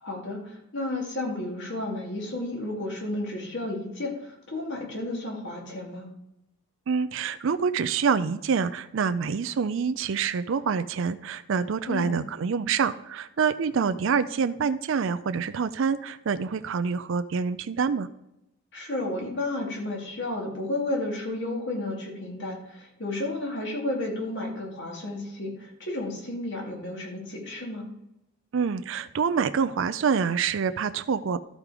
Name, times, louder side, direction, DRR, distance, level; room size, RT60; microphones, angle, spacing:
voice 1, 0.0-6.1 11.9-12.2 18.7-27.9, left 2 dB, 55° left, 0 dB, 2.3 m, -32 dB
voice 2, 6.9-18.1 28.5-31.4, right 6 dB, 60° right, 11 dB, 0.4 m, -26 dB
12.0 x 5.1 x 4.8 m, 0.85 s
head